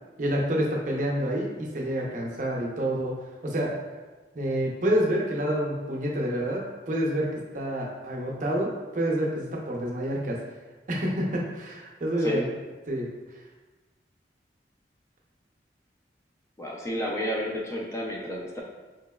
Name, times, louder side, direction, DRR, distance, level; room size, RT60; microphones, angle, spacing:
voice 1, 0.2-3.1 3.4-3.7 4.3-10.4 10.9-12.5 12.9-13.1, right 1 dB, 45° right, -2 dB, 0.6 m, -28 dB
voice 2, 12.2-12.5 16.6-18.6, equal, 15° left, -2 dB, 0.4 m, -31 dB
3.8 x 2.9 x 2.2 m, 1.2 s
head